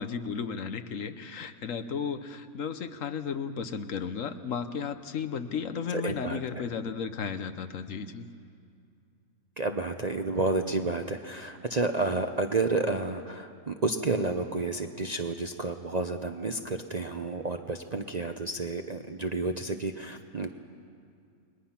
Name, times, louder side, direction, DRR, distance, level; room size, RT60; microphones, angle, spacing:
voice 1, 0.0-8.3, left 6 dB, 65° left, 10 dB, 1.2 m, -34 dB
voice 2, 5.9-6.7 9.6-20.5, right 3 dB, 40° right, 6 dB, 0.6 m, -30 dB
29.5 x 21.0 x 5.8 m, 2.4 s
omnidirectional pair, 1.6 m